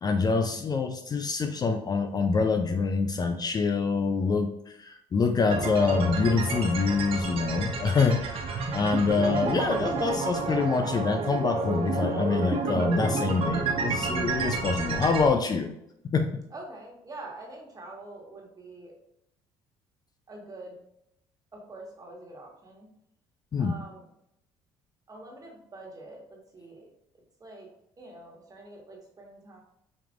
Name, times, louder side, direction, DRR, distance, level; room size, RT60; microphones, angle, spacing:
voice 1, 0.0-15.7 16.0-16.4 23.5-23.8, left 4 dB, 35° left, 6 dB, 0.4 m, -26 dB
sound 1, 5.5-15.3, right 4 dB, 55° right, 0.8 m, -30 dB
voice 2, 16.5-18.9 20.3-20.8 21.5-22.9 23.6-24.0 25.1-26.9 27.4-27.7 28.0-29.6, right 2 dB, 30° right, -1 dB, 1.5 m, -45 dB
5.2 x 3.0 x 2.4 m, 0.78 s
supercardioid pair, 70°, 12 cm